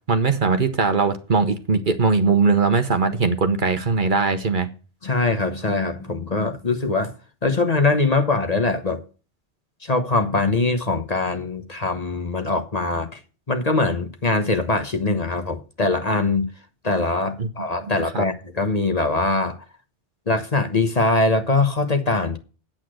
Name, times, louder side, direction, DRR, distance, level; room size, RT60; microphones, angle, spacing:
voice 1, 0.1-4.7 17.4-17.5 18.1-18.2, right 4 dB, 45° right, 1.1 m, -20 dB
voice 2, 5.0-7.1 7.4-9.0 9.8-13.2 13.5-16.5 16.8-19.6 20.3-22.4, left 3 dB, 35° left, 1.2 m, -22 dB
8.8 x 8.3 x 6.3 m
omnidirectional pair, 1.2 m